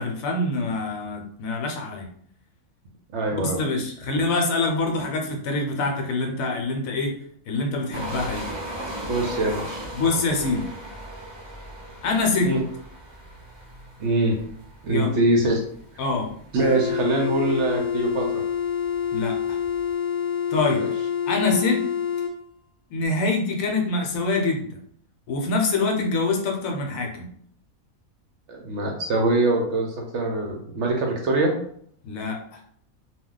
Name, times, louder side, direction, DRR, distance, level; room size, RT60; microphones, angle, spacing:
voice 1, 0.0-2.1 3.3-7.1 7.5-8.4 9.9-10.7 12.0-12.5 14.9-15.2 16.0-16.3 19.1-19.6 20.5-20.8 21.3-21.8 22.9-24.7 25.3-27.3 32.0-32.6, left 3 dB, 75° left, 2 dB, 1.0 m, -25 dB
voice 2, 3.1-3.6 7.9-8.0 9.1-9.8 12.4-12.6 14.0-14.4 14.8-15.6 15.9-16.0 16.5-18.4 20.8-20.9 28.5-31.5, right 2 dB, 65° right, 1 dB, 0.7 m, -23 dB
sound 1, 7.9-19.9, right 1 dB, 35° right, 0.4 m, -38 dB
sound 2, 16.6-22.3, left 8 dB, 60° left, 0.6 m, -27 dB
2.3 x 2.1 x 3.7 m, 0.63 s
omnidirectional pair, 1.5 m